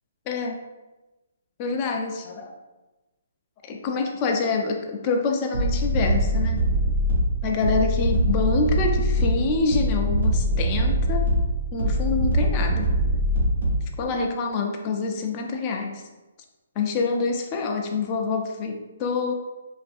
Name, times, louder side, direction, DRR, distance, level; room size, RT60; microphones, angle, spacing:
voice 1, 0.3-0.6 1.6-2.5 3.7-6.6 7.4-11.3 11.7-12.9 14.0-16.0 16.8-19.3, left 4 dB, 30° left, 2 dB, 0.3 m, -26 dB
sound 1, 5.5-13.9, equal, 85° right, 1.1 m, -23 dB
2.6 x 2.4 x 2.5 m, 1.1 s
hypercardioid pair, 140°, 0 cm